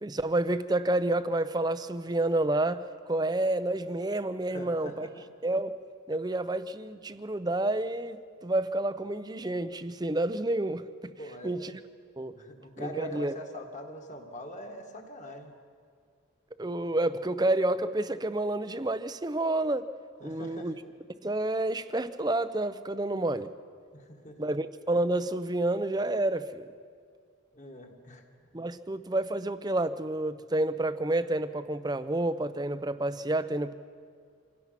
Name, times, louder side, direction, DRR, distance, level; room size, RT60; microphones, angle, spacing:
voice 1, 0.0-5.1 5.4-5.7 6.1-11.1 11.4-11.7 12.2-12.4 12.8-13.3 16.6-19.9 20.2-20.7 21.2-23.5 24.4-26.7 28.5-33.7, right 2 dB, 20° right, 13 dB, 0.5 m, -29 dB
voice 2, 4.5-5.2 11.2-11.6 12.4-15.5 20.2-20.7 23.9-24.4 27.5-28.2, equal, 35° left, 3 dB, 1.8 m, -42 dB
26.5 x 17.0 x 5.9 m, 2.1 s
head